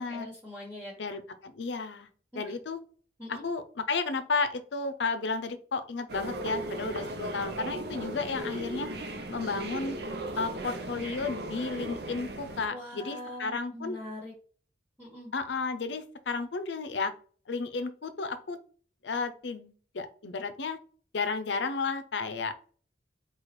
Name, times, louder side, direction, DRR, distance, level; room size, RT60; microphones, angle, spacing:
voice 1, 0.0-1.2 2.3-2.4 3.2-3.5 12.7-14.3 15.0-15.3, left 1 dB, 15° right, -6 dB, 1.5 m, -42 dB
voice 2, 1.0-2.1 2.3-2.8 3.3-8.9 9.3-10.0 10.4-14.0 15.3-17.1 17.5-18.6 19.0-20.8 21.1-22.5, left 4 dB, 80° left, 10 dB, 0.6 m, -33 dB
sound 1, 6.1-12.7, right 1 dB, 65° right, 0.6 m, -37 dB
4.8 x 2.4 x 4.3 m, 0.42 s
head